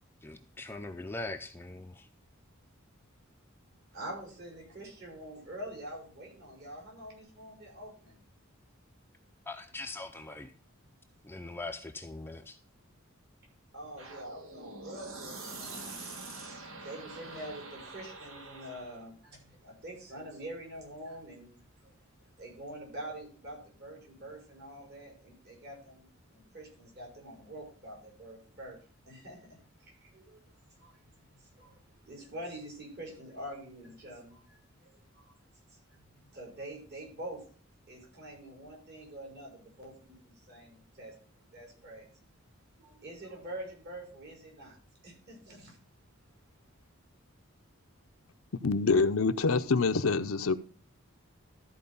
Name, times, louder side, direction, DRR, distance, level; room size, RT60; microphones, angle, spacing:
voice 1, 0.2-2.1 9.5-10.5 11.2-12.6, left 2 dB, 10° left, 0.5 m, -41 dB
voice 2, 3.9-8.2 13.7-16.0 16.4-21.5 21.8-21.9 22.4-28.8 29.1-30.4 30.8-35.3 35.9-37.4 37.9-42.1 42.8-44.8 45.0-45.8, right 1 dB, 55° right, 5.0 m, -46 dB
sound 1, 14.0-19.0, right 3 dB, 80° right, 2.0 m, -45 dB
voice 3, 48.6-50.5, left 4 dB, 85° left, 0.7 m, -26 dB
13.5 x 4.7 x 5.4 m
head